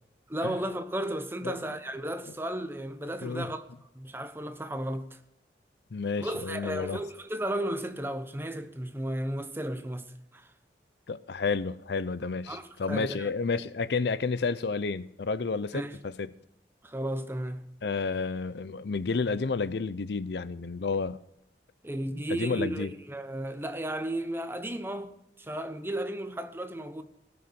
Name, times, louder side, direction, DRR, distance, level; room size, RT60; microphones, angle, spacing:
voice 1, 0.3-3.6 3.9-5.2 6.2-10.5 12.5-13.3 15.7-15.9 16.8-17.6 21.8-27.0, right 1 dB, 15° right, 0.9 m, -34 dB
voice 2, 5.9-7.0 11.1-16.3 17.8-21.2 22.3-22.9, left 4 dB, 65° left, 0.5 m, -31 dB
17.5 x 6.7 x 6.9 m
head